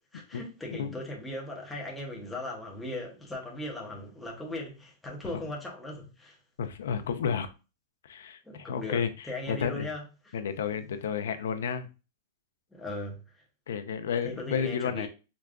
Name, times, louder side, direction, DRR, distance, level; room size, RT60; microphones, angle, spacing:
voice 1, 0.1-6.4 8.5-10.4 12.7-13.2 14.2-15.1, left 1 dB, 5° left, 0.6 m, -38 dB
voice 2, 6.6-7.5 8.0-9.9 10.3-11.9 13.7-15.1, left 7 dB, 90° left, 0.5 m, -31 dB
4.8 x 2.3 x 2.3 m
supercardioid pair, 175°, 0 cm